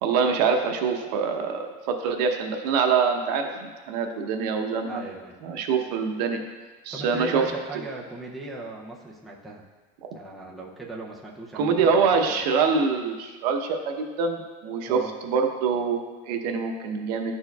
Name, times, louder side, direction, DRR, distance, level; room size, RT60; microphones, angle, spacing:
voice 1, 0.0-5.0 5.4-6.4 6.8-7.4 11.5-17.3, right 5 dB, 85° right, 4 dB, 0.8 m, -25 dB
voice 2, 4.9-5.4 6.9-9.6 10.1-12.4 14.8-15.1, right 2 dB, ahead, -4 dB, 0.4 m, -38 dB
11.5 x 4.4 x 2.3 m, 1.4 s
cardioid pair, 170°, 20 cm